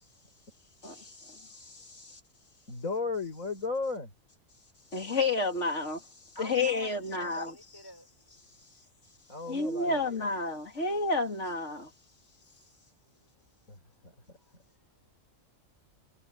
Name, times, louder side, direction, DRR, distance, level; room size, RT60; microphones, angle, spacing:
voice 1, 0.8-2.2 4.9-6.1 6.4-7.5 9.5-11.9, left 3 dB, 60° left, 3.3 m, -31 dB
voice 2, 2.7-4.1 9.3-10.3 13.7-14.1, left 4 dB, 85° left, 5.9 m, -35 dB
voice 3, 6.4-8.1 13.2-13.3 14.3-15.2, left 1 dB, 15° left, 5.3 m, -49 dB
omnidirectional pair, 1.4 m